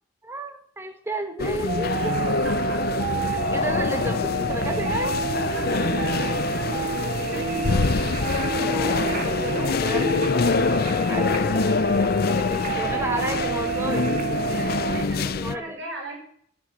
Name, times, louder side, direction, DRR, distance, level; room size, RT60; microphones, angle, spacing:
voice 1, 0.2-2.3 3.3-5.2 7.0-7.5 8.4-10.7 11.0-14.1 14.9-15.8, right 1 dB, 15° right, 5 dB, 1.7 m, -33 dB
sound 1, 1.4-15.6, left 4 dB, 50° left, 0.5 m, -25 dB
sound 2, 1.7-15.0, right 4 dB, 40° right, 2.4 m, -29 dB
voice 2, 2.0-2.8 5.4-7.8 11.3-11.5 14.4-16.2, right 2 dB, 70° right, 2 dB, 6.5 m, -39 dB
13.0 x 7.6 x 9.9 m, 0.64 s
head